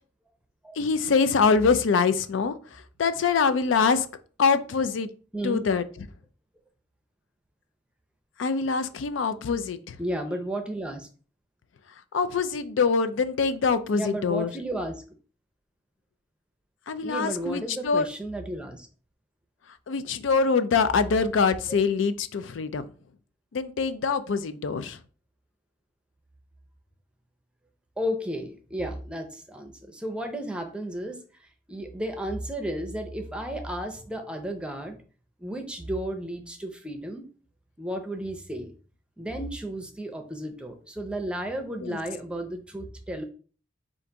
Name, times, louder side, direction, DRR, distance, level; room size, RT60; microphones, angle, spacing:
voice 1, 0.8-2.5 3.0-4.1 4.4-5.1 5.4-5.8 8.4-10.0 12.1-14.5 16.9-18.1 19.9-22.9 23.5-25.0 41.8-42.0, left 5 dB, 85° left, 12 dB, 0.4 m, -24 dB
voice 2, 5.3-5.7 10.0-11.1 13.9-15.0 17.0-18.9 28.0-31.2 31.7-35.0 35.4-37.2 37.8-38.7 39.2-43.2, right 1 dB, 5° right, 5 dB, 0.5 m, -33 dB
3.8 x 2.5 x 4.5 m, 0.40 s
head